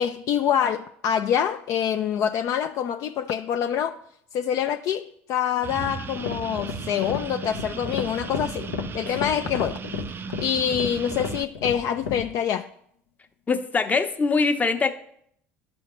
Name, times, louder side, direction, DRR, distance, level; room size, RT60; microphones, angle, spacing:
voice 1, 0.0-4.0 4.3-8.7 8.9-9.8 10.4-12.7, left 9 dB, 55° left, 0.4 m, -25 dB
sound 1, 5.6-11.4, right 7 dB, 35° right, 0.4 m, -36 dB
sound 2, 5.7-12.3, left 6 dB, 90° left, 0.6 m, -33 dB
voice 2, 13.5-14.9, left 4 dB, 25° left, 0.7 m, -23 dB
11.5 x 4.4 x 3.0 m
hypercardioid pair, 75°, 7 cm